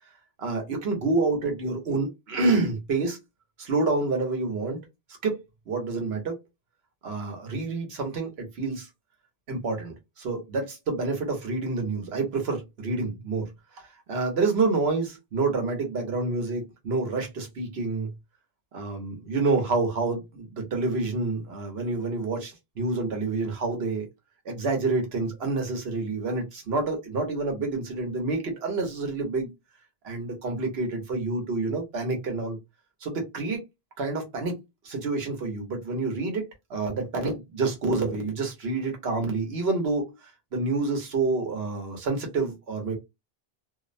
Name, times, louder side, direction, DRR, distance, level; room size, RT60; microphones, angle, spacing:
voice 1, 0.4-3.2 3.6-4.8 5.2-6.4 7.0-8.9 9.5-18.1 18.7-24.1 24.4-29.5 30.0-32.6 33.0-33.6 34.0-34.6 34.8-43.0, right 3 dB, 85° right, 1.1 m, -28 dB
2.6 x 2.0 x 2.5 m
omnidirectional pair, 1.0 m